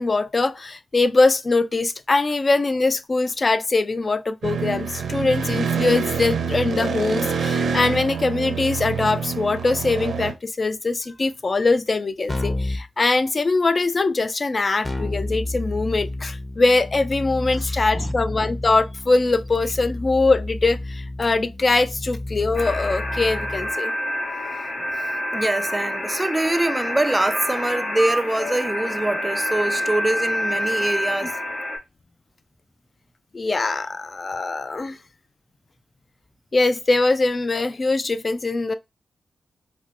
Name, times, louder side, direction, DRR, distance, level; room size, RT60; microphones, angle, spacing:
voice 1, 0.0-23.9 33.3-35.0 36.5-38.7, left 3 dB, 45° left, 0.4 m, -22 dB
sound 1, 4.4-10.3, right 5 dB, 85° right, 0.7 m, -26 dB
Keyboard (musical), 12.3-12.8 14.8-23.7, left 1 dB, 25° left, 0.8 m, -30 dB
voice 2, 17.6-18.2 25.3-31.4, right 1 dB, 20° right, 0.3 m, -24 dB
sound 2, 22.5-31.8, left 1 dB, 70° left, 1.4 m, -27 dB
4.4 x 2.1 x 2.5 m
cardioid pair, 50°, 0 cm